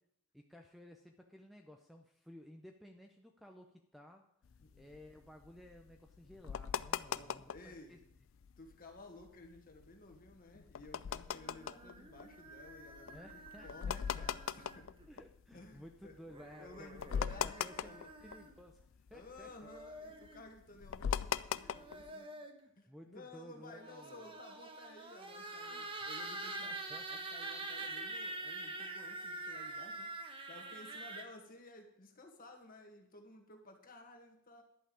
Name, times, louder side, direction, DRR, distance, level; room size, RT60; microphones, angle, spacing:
voice 1, 0.3-4.3 4.6-8.0 13.0-14.3 15.1-16.9 17.3-19.7 20.1-20.2 22.3-24.3 25.7-25.9 26.6-27.1, equal, ahead, 4 dB, 0.6 m, -56 dB
sound 1, 4.5-7.8 8.2-8.3 8.4-8.7 9.2-15.9 16.3-16.4 16.7-18.8 19.1-22.1, left 7 dB, 60° left, 0.4 m, -40 dB
voice 2, 7.0-8.0 8.6-13.2 13.6-14.9 15.5-16.2 16.6-18.1 19.1-22.3 22.8-34.6, left 2 dB, 40° left, 4 dB, 1.9 m, -55 dB
sound 2, 11.3-15.1 16.3-18.6 19.4-20.4 21.5-22.7 23.7-31.2, right 2 dB, 25° right, 1.2 m, -46 dB
11.0 x 5.7 x 8.6 m, 0.75 s
head